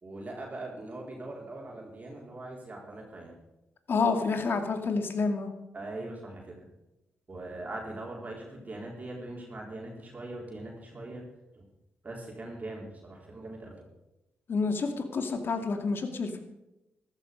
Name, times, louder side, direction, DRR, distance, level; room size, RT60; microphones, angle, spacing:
voice 1, 0.0-3.3 5.7-6.7 7.3-11.3 12.0-13.8, right 2 dB, 40° right, -2 dB, 4.1 m, -41 dB
voice 2, 3.9-5.5 14.5-16.4, left 4 dB, 60° left, 6 dB, 2.2 m, -28 dB
14.0 x 12.5 x 5.4 m, 0.95 s
cardioid pair, 60°, 4 cm